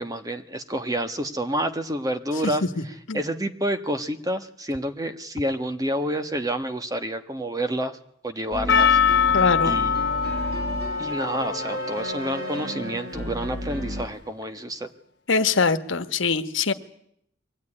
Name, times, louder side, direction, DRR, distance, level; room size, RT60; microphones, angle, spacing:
voice 1, 0.0-8.0 8.2-9.0 9.6-10.0 11.0-14.9, right 1 dB, 20° right, 9 dB, 1.2 m, -29 dB
voice 2, 2.4-2.8 3.1-3.2 9.3-9.7 15.3-16.7, left 4 dB, 80° left, 10 dB, 1.3 m, -23 dB
sound 1, 8.5-14.0, equal, 55° right, 7.3 m, -32 dB
Percussion, 8.7-13.2, left 7 dB, 55° left, 1.0 m, -24 dB
23.5 x 17.0 x 9.9 m, 0.73 s
head